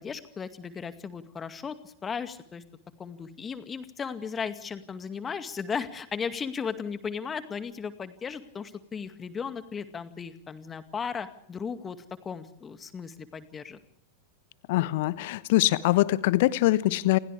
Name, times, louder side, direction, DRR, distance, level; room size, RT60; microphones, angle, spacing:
voice 1, 0.0-2.6 3.0-12.0 12.2-13.8, left 6 dB, 20° left, 10 dB, 2.2 m, -36 dB
voice 2, 14.7-17.2, left 17 dB, 50° left, 18 dB, 1.1 m, -23 dB
29.5 x 27.5 x 3.5 m, 0.67 s
figure-of-eight pair, 90°, 0 cm